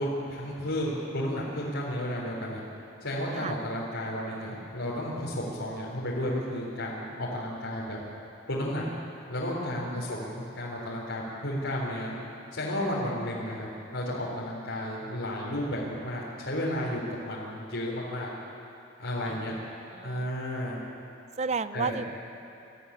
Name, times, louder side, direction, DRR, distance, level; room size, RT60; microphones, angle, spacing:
voice 1, 0.0-2.6 3.0-8.0 8.5-8.9 9.3-12.1 12.5-18.3 19.0-19.6 20.0-20.8 21.7-22.0, left 1 dB, 85° left, -6 dB, 4.0 m, -32 dB
voice 2, 20.0-20.3 21.4-22.0, right 4 dB, 35° right, 13 dB, 0.6 m, -32 dB
24.5 x 14.0 x 10.0 m, 2.8 s
head